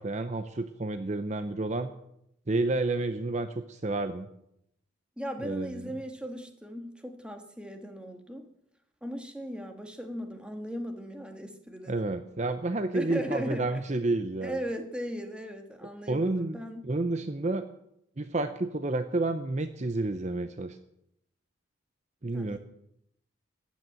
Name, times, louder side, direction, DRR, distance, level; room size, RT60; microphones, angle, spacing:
voice 1, 0.0-1.9 2.5-4.3 5.4-5.9 11.9-14.6 16.1-16.6 16.8-17.7 18.2-20.8 22.2-22.6, right 2 dB, 35° right, 10 dB, 0.7 m, -30 dB
voice 2, 5.2-8.5 9.0-12.0 12.9-13.7 14.4-16.8 22.3-22.6, equal, 5° right, 5 dB, 1.6 m, -37 dB
14.0 x 9.3 x 9.2 m, 0.78 s
head